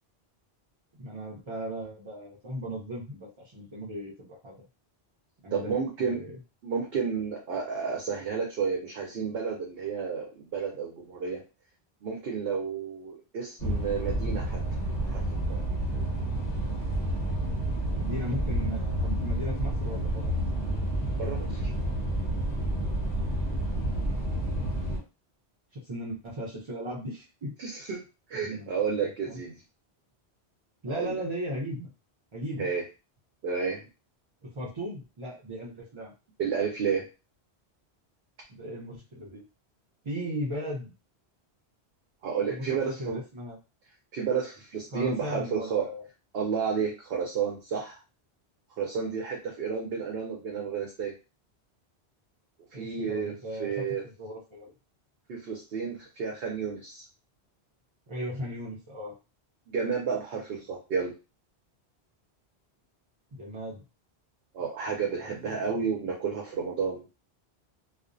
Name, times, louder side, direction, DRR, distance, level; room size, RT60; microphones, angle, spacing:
voice 1, 1.0-4.6 5.4-6.4 17.9-20.4 25.7-27.5 28.3-28.7 29.0-29.4 30.8-31.9 32.3-32.7 34.4-36.1 38.5-39.5 40.0-40.9 42.5-43.6 44.9-46.1 52.7-54.7 58.1-59.2 63.3-63.8 65.2-65.3 65.7-65.8, equal, 45° right, -5 dB, 0.4 m, -37 dB
voice 2, 5.5-6.2 6.6-11.4 12.0-14.6 15.0-15.2 15.5-15.6 21.2-21.6 27.6-28.0 28.3-29.6 30.9-31.2 32.6-32.8 33.4-33.8 36.4-37.1 42.2-43.2 44.1-45.8 46.3-48.0 48.8-51.1 52.7-53.3 53.6-54.0 55.3-57.0 59.7-61.1 64.5-67.0, right 6 dB, 65° right, -1 dB, 0.8 m, -31 dB
sound 1, 13.6-25.0, right 1 dB, 40° left, 1.2 m, -29 dB
2.4 x 2.1 x 2.5 m, 0.30 s
omnidirectional pair, 1.1 m